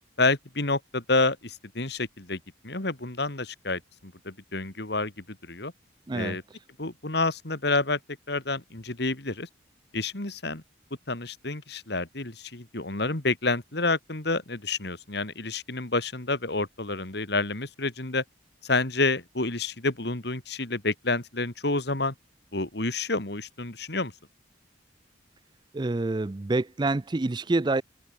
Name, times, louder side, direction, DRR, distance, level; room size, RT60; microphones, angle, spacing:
voice 1, 0.2-5.7 6.1-6.4 6.8-8.0 8.3-9.5 9.9-10.6 11.1-18.2 18.6-22.1 22.5-24.1, left 3 dB, 60° left, 2.5 m, -29 dB
voice 2, 6.1-6.4 25.7-27.8, right 2 dB, 25° right, 0.4 m, -27 dB
open air
head